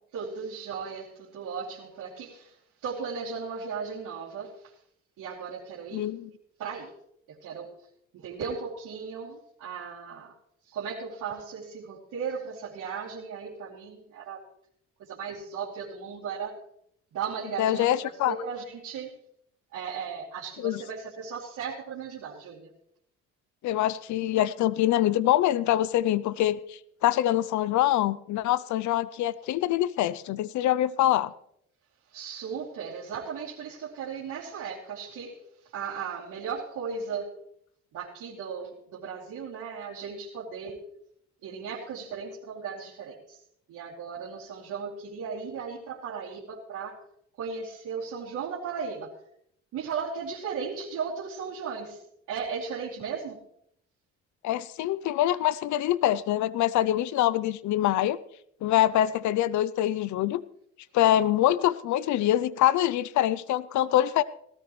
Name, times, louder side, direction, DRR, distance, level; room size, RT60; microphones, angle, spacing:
voice 1, 0.1-4.8 5.2-6.1 6.6-6.9 7.3-7.7 8.1-10.3 10.6-14.4 15.0-16.6 17.1-19.2 19.7-22.7 32.1-37.3 37.9-40.8 41.4-43.4 43.7-47.0 47.4-49.2 49.7-52.0 52.3-53.4, right 6 dB, 85° right, -8 dB, 2.9 m, -36 dB
voice 2, 17.6-18.3 20.6-20.8 23.6-31.3 54.4-58.2 58.6-60.4 60.9-64.2, left 13 dB, 70° left, 18 dB, 0.5 m, -24 dB
18.0 x 13.5 x 3.2 m, 0.71 s
cardioid pair, 90°, 30 cm